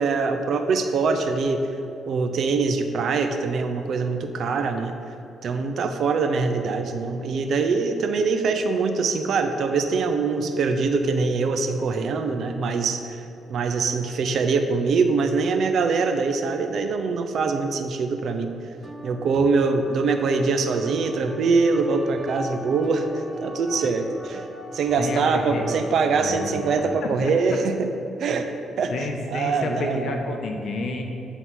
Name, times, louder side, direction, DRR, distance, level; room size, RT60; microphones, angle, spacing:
voice 1, 0.0-1.6 2.1-4.9 5.4-13.2 13.5-18.5 19.0-23.1 23.4-24.4 24.7-27.9 28.2-28.5 28.8-30.2, right 4 dB, 65° right, 7 dB, 0.7 m, -23 dB
sound 1, 18.8-26.8, equal, 10° right, 0.8 m, -40 dB
voice 2, 25.0-25.9 26.2-26.7 27.2-27.3 28.9-31.0, left 2 dB, 65° left, 3 dB, 1.0 m, -30 dB
9.4 x 4.0 x 6.1 m, 2.8 s
cardioid pair, 90°, 0 cm